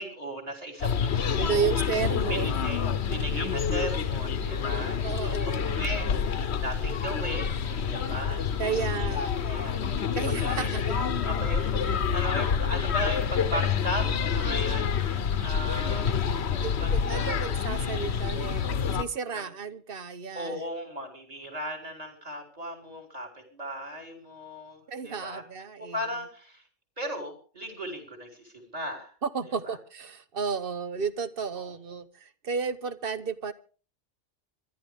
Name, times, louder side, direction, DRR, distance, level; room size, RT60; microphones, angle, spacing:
voice 1, 0.0-1.8 2.3-2.8 3.1-7.5 7.8-9.1 9.4-16.1 16.8-17.5 19.3-19.4 20.3-25.4 25.8-26.6 27.0-29.1 29.5-29.8 31.6-31.8, equal, 35° right, 3.8 m, -37 dB
sound 1, 0.8-19.0, left 7 dB, 70° left, 1.2 m, -28 dB
voice 2, 1.4-2.5 5.0-5.7 8.6-9.4 10.1-11.0 16.6-20.6 24.9-26.0 29.2-33.5, right 6 dB, 55° right, 1.1 m, -32 dB
27.0 x 11.5 x 3.6 m
omnidirectional pair, 1.2 m